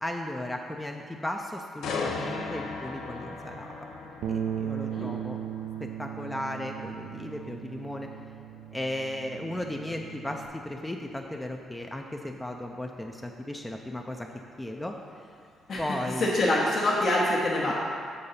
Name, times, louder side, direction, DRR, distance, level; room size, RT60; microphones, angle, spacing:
voice 1, 0.0-3.7 4.3-5.4 5.8-8.1 8.7-14.3 14.6-15.0 15.8-16.3, left 1 dB, 10° left, 2 dB, 0.4 m, -35 dB
sound 1, 1.8-15.7 16.1-16.3, left 4 dB, 80° left, 0.6 m, -40 dB
Bass guitar, 4.2-10.5, right 9 dB, 80° right, 0.3 m, -37 dB
voice 2, 4.8-5.1 15.7-17.7, left 1 dB, 55° left, -6 dB, 1.0 m, -26 dB
6.8 x 3.8 x 5.5 m, 2.3 s
cardioid pair, 90°, 0 cm